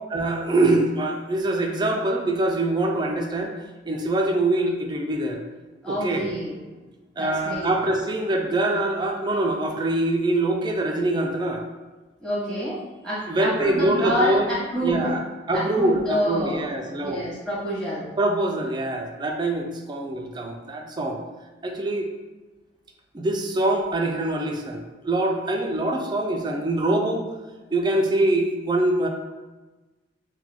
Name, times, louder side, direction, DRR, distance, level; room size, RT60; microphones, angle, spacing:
voice 1, 0.1-3.6 3.9-5.4 5.9-6.3 7.2-11.6 13.3-14.5 14.8-15.2 15.5-17.2 18.2-21.2 21.6-22.1 23.1-27.3 27.7-29.1, right 2 dB, 25° right, 2 dB, 0.3 m, -24 dB
voice 2, 5.8-6.6 7.2-7.7 12.2-15.1 15.5-16.6 17.0-18.1, equal, 5° left, -9 dB, 1.2 m, -27 dB
3.9 x 2.2 x 2.9 m, 1.2 s
head